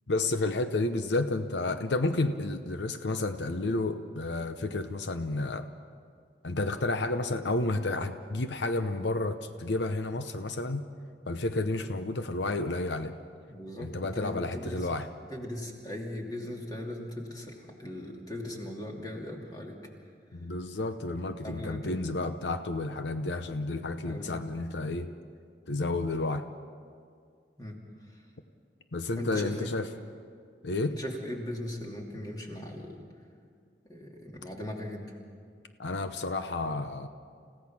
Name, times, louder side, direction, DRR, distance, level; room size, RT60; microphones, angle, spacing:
voice 1, 0.1-5.7 6.4-10.8 11.3-13.1 13.8-15.1 20.3-25.1 25.7-26.4 28.9-29.9 30.6-30.9 35.8-37.1, left 2 dB, 85° left, 9 dB, 0.8 m, -31 dB
voice 2, 13.5-14.9 15.3-19.8 21.4-22.1 24.0-24.4 27.6-27.8 28.1-28.2 29.2-29.6 30.9-33.0 33.9-35.2, left 1 dB, 20° left, 0 dB, 2.8 m, -39 dB
29.5 x 16.5 x 6.0 m, 2.2 s
head